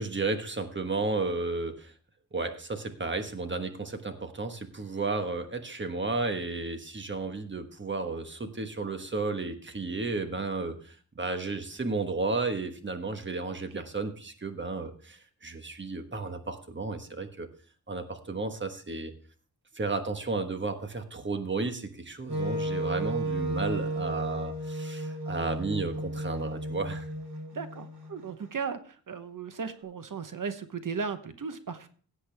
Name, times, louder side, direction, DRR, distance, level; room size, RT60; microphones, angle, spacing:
voice 1, 0.0-1.9 2.3-17.5 17.9-19.1 19.7-27.1, right 3 dB, 30° right, 7 dB, 1.3 m, -33 dB
Wind instrument woodwind instrument, 22.3-28.3, right 1 dB, 80° right, 2.2 m, -33 dB
voice 2, 27.5-31.9, right 5 dB, 55° right, 10 dB, 1.0 m, -36 dB
16.5 x 7.8 x 3.4 m, 0.42 s
wide cardioid pair, 130°, 39 cm